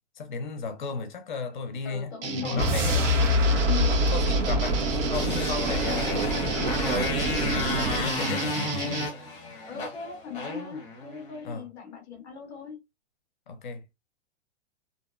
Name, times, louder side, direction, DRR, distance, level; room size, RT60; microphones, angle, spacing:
voice 1, 0.2-2.1 2.4-3.0 3.7-6.3 6.7-8.6 11.4-11.7 13.5-13.8, left 5 dB, 40° left, 0.6 m, -35 dB
voice 2, 1.8-3.1 3.7-4.0 5.4-6.0 9.6-12.8, left 7 dB, 5° right, 0.3 m, -39 dB
sound 1, 2.2-9.1, right 4 dB, 55° right, 0.6 m, -33 dB
sound 2, 2.5-8.2, equal, 90° right, 1.1 m, -26 dB
Motorcycle, 4.8-11.4, left 2 dB, 15° left, 0.8 m, -32 dB
2.6 x 2.1 x 2.4 m
hypercardioid pair, 175°, 35 cm